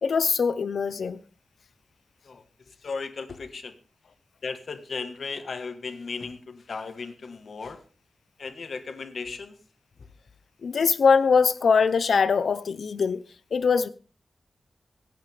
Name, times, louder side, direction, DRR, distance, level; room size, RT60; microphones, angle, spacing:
voice 1, 0.0-1.2 10.6-13.2 13.5-13.9, left 5 dB, 85° left, 0.8 m, -22 dB
voice 2, 2.2-3.7 4.4-7.8 8.4-9.6, left 4 dB, 65° left, 1.5 m, -36 dB
25.0 x 8.8 x 3.5 m
wide cardioid pair, 135°, 0 cm